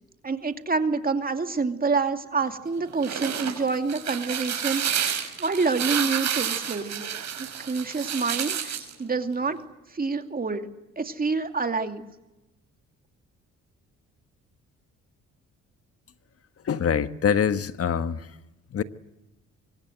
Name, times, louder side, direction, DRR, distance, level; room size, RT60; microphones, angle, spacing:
voice 1, 0.2-7.1 7.6-9.6 9.9-10.7 11.0-12.1, right 4 dB, 30° right, 2.6 m, -27 dB
sound 1, 2.8-8.9, right 8 dB, 65° right, 6.2 m, -30 dB
voice 2, 16.6-18.2 18.7-18.8, left 7 dB, 50° left, 1.5 m, -24 dB
25.5 x 24.0 x 7.9 m
cardioid pair, 90°, 30 cm